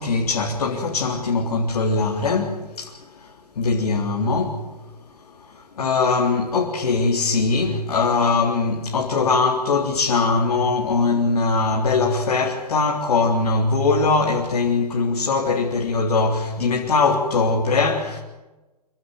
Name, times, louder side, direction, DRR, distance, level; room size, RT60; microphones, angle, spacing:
voice 1, 0.0-4.6 5.1-18.2, left 4 dB, 70° left, 3.8 m, -21 dB
27.5 x 15.5 x 9.7 m
hypercardioid pair, 120°, 20 cm